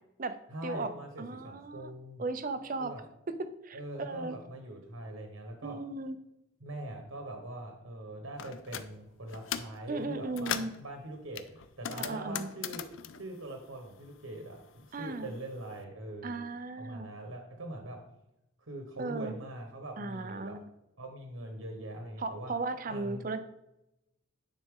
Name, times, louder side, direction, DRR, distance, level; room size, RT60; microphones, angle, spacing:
voice 1, 0.5-2.2 2.8-3.0 3.7-5.8 6.6-12.8 13.2-16.3 16.8-18.0 18.6-20.6 21.0-22.5 22.9-23.2, right 1 dB, 75° right, 3 dB, 1.1 m, -42 dB
voice 2, 1.2-1.9 2.2-2.9 3.3-3.4 3.6-4.4 5.6-6.2 9.9-10.7 11.9-12.5 14.9-15.3 16.2-17.1 19.0-19.3 20.0-20.6 22.2-23.4, right 3 dB, 40° right, 10 dB, 0.5 m, -36 dB
sound 1, 8.4-8.9 9.3-9.8 10.1-10.8 11.3-14.3 14.6-15.7, left 9 dB, 65° left, 0.4 m, -39 dB
9.4 x 4.2 x 3.7 m, 0.88 s
head